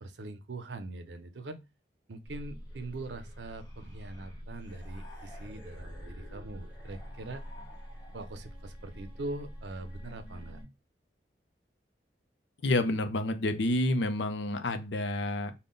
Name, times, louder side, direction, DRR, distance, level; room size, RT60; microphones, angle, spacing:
voice 1, 0.0-1.6 2.1-7.4 8.1-10.6, right 2 dB, 80° right, 9 dB, 0.5 m, -42 dB
sound 1, 2.2-10.6, equal, 5° right, 1.6 m, -45 dB
sound 2, 2.7-8.5, left 1 dB, 25° left, 1.4 m, -55 dB
voice 2, 12.6-15.5, left 1 dB, 85° left, 9 dB, 0.6 m, -29 dB
3.6 x 2.2 x 3.8 m, 0.25 s
head